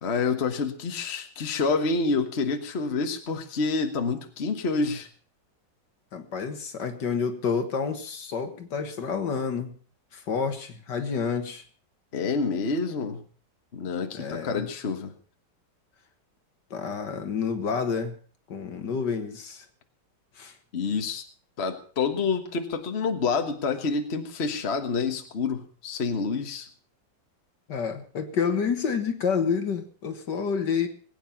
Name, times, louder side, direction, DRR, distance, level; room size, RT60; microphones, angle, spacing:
voice 1, 0.0-5.1 12.1-13.2 13.7-15.1 20.7-21.2 21.6-26.7, left 4 dB, 40° left, 7 dB, 1.5 m, -28 dB
voice 2, 6.1-9.7 10.1-11.6 14.1-14.7 16.7-18.1 18.5-19.7 20.4-20.6 27.7-30.9, left 6 dB, 70° left, 7 dB, 2.2 m, -29 dB
20.5 x 9.2 x 5.8 m, 0.43 s
omnidirectional pair, 2.0 m